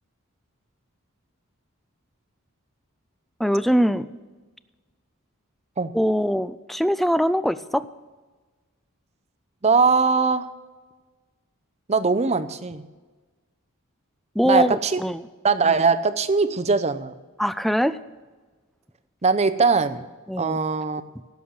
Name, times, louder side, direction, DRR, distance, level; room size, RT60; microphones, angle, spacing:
voice 1, 3.4-4.1 5.9-7.9 14.4-15.2 17.4-18.0 20.3-20.6, equal, ahead, 14 dB, 0.3 m, -22 dB
voice 2, 9.6-10.5 11.9-12.8 14.4-15.0 15.4-17.1 19.2-20.0 20.4-21.0, right 4 dB, 30° right, 12 dB, 0.6 m, -21 dB
17.0 x 7.1 x 6.4 m, 1.3 s
head